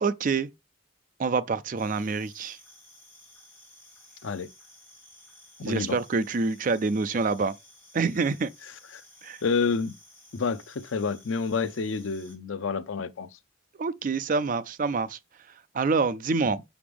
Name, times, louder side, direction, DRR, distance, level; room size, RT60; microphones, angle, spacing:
voice 1, 0.0-0.5 1.2-2.6 5.6-7.5 7.9-8.5 9.2-9.4 13.8-15.2 15.7-16.6, right 4 dB, 40° right, 0.4 m, -26 dB
sound 1, 1.8-12.4, left 1 dB, 10° left, 2.1 m, -54 dB
voice 2, 5.7-6.0 9.4-9.9 10.3-13.3, left 5 dB, 75° left, 0.5 m, -28 dB
5.9 x 5.0 x 3.4 m
head